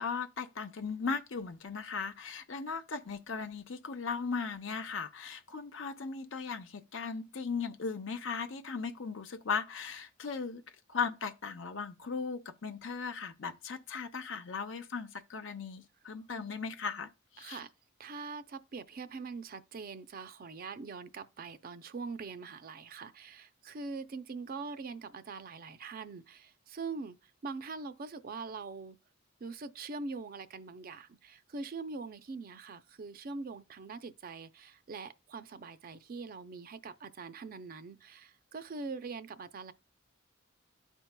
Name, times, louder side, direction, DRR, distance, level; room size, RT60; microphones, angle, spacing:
voice 1, 0.0-10.6 10.9-17.1 17.4-17.6, left 5 dB, 70° left, 0.7 m, -37 dB
voice 2, 17.4-17.7 18.0-29.0 29.4-39.7, right 4 dB, 45° right, 0.5 m, -43 dB
12.5 x 4.5 x 2.2 m
head